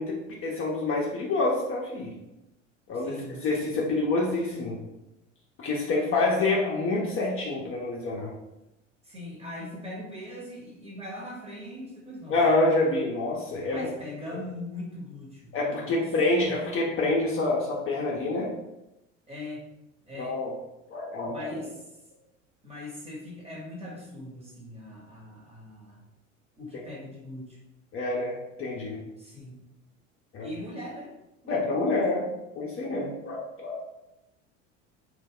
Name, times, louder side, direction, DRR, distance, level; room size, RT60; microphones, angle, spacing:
voice 1, 0.0-2.1 2.9-4.8 5.6-8.3 12.3-13.9 15.5-18.5 20.2-20.5 20.9-21.6 27.9-29.0 30.3-30.5 31.5-32.2 32.6-33.8, left 2 dB, 35° left, -3 dB, 0.6 m, -27 dB
voice 2, 2.9-3.4 5.9-6.4 9.0-12.5 13.6-15.5 15.8-16.6 19.3-19.6 20.0-20.4 21.2-21.8 22.6-26.0 26.6-27.6 29.2-29.6 30.4-31.1 31.4-32.1, left 1 dB, 15° right, -3 dB, 1.0 m, -40 dB
2.2 x 2.1 x 3.6 m, 0.93 s
hypercardioid pair, 75°, 38 cm